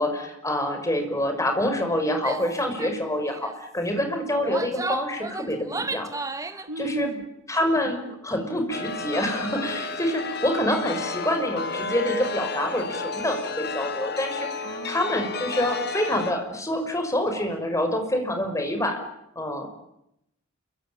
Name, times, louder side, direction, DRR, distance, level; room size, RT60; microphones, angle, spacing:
voice 1, 0.0-6.4 6.8-7.1 7.5-19.0 19.4-19.7, left 1 dB, 15° left, 5 dB, 5.7 m, -27 dB
Female speech woman speaking / Yell, 2.2-2.5 2.8-3.0 3.2-3.6 4.3-6.7, right 3 dB, 15° right, 1.3 m, -33 dB
voice 2, 6.7-7.3 8.1-8.2 14.6-15.3 15.8-15.9, right 1 dB, 85° right, 7 dB, 3.6 m, -35 dB
Chime, 8.7-16.3, left 3 dB, 50° left, 2.2 m, -32 dB
28.0 x 24.0 x 8.9 m, 0.81 s
head